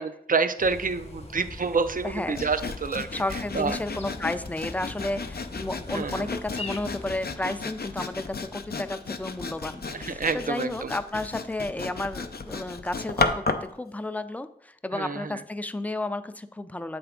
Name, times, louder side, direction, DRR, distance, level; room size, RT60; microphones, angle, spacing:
voice 1, 0.0-3.1 3.5-3.7 5.9-6.3 9.9-10.9 14.9-15.4, right 4 dB, 60° right, 11 dB, 0.4 m, -28 dB
sound 1, 0.6-7.3, left 2 dB, 40° left, 0.7 m, -42 dB
voice 2, 2.0-2.4 3.1-17.0, left 2 dB, 10° left, 11 dB, 0.3 m, -32 dB
Sawing, 2.3-13.7, left 4 dB, 85° left, 0.4 m, -34 dB
8.0 x 3.4 x 3.6 m, 0.72 s
wide cardioid pair, 45°, 16 cm